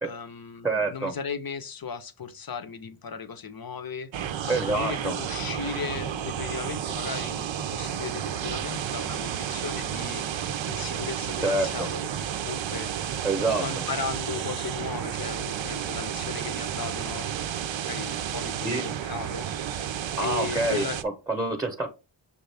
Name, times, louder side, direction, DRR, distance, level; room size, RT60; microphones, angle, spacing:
voice 1, 0.0-12.9 13.5-17.5 17.8-19.8 20.2-21.0, left 6 dB, 50° left, 0.7 m, -36 dB
voice 2, 0.6-1.1 4.5-5.2 11.4-11.9 13.2-13.6 18.6-18.9 20.2-21.9, right 2 dB, 5° right, 0.8 m, -27 dB
sound 1, 4.1-21.0, right 9 dB, 70° right, 0.5 m, -32 dB
6.6 x 2.4 x 3.3 m
wide cardioid pair, 75°, 47 cm